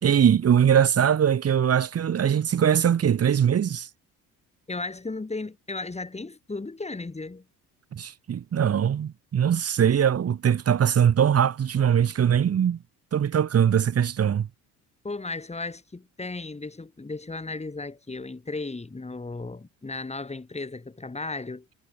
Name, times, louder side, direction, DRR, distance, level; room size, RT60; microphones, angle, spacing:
voice 1, 0.0-3.9 7.9-12.8 13.1-14.5, right 8 dB, 45° right, 1.6 m, -21 dB
voice 2, 4.7-7.4 15.0-21.7, left 3 dB, 20° left, 3.8 m, -35 dB
supercardioid pair, 75°, 35 cm